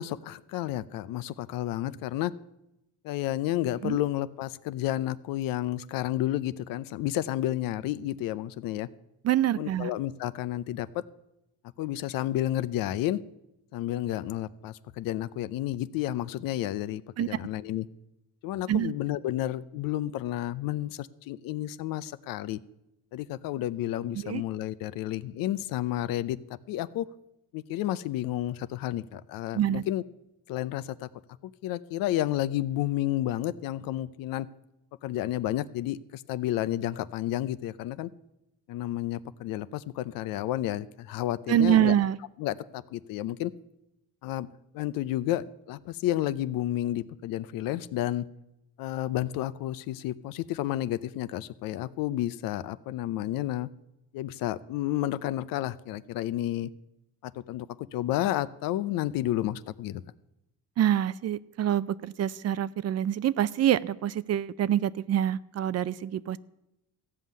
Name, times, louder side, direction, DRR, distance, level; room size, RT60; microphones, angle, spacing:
voice 1, 0.0-2.3 3.0-8.9 9.6-11.0 11.8-13.2 13.7-17.9 18.4-22.6 23.1-26.4 26.7-27.1 27.5-30.0 30.5-31.1 31.4-34.5 35.0-38.1 38.7-41.9 42.4-43.5 44.2-44.5 44.7-48.3 48.8-53.7 54.1-56.7 57.2-57.7 57.9-60.0, left 14 dB, 85° left, 16 dB, 0.6 m, -31 dB
voice 2, 9.2-9.9 17.2-17.3 18.7-18.9 24.1-24.4 29.5-29.8 41.5-42.2 60.8-66.4, right 11 dB, 50° right, 18 dB, 0.6 m, -26 dB
15.0 x 5.7 x 9.3 m, 0.89 s
cardioid pair, 95°, 33 cm